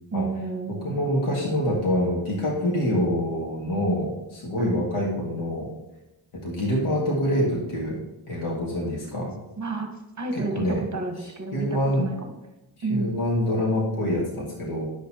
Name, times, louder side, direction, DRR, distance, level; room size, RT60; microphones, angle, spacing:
voice 1, 0.1-1.1 4.6-4.8 8.4-8.5 9.6-9.9 10.2-12.3 12.8-13.1, right 3 dB, 35° right, 3 dB, 1.3 m, -31 dB
voice 2, 0.8-5.7 6.3-8.0 8.3-9.3 10.3-10.8 11.5-12.1 12.9-14.9, equal, 80° left, -4 dB, 2.1 m, -26 dB
11.0 x 6.5 x 2.9 m, 0.97 s
wide cardioid pair, 55°, 49 cm